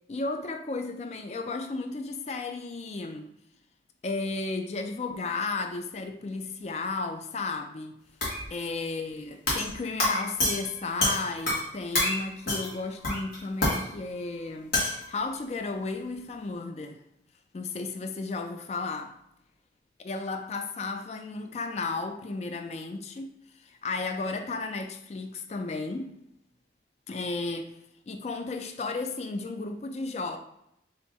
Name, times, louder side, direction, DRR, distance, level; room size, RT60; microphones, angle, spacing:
voice 1, 0.1-3.3 4.0-8.0 8.5-17.0 17.5-19.1 20.0-23.3 23.6-26.1 27.1-27.7 28.1-30.4, left 3 dB, 40° left, 0.4 m, -34 dB
sound 1, 8.2-8.5 9.5-9.7 10.0-11.7 11.9-12.2 12.5-12.8 13.0-13.8 14.7-15.0, left 1 dB, 55° left, 1.6 m, -27 dB
3.5 x 2.9 x 4.1 m
head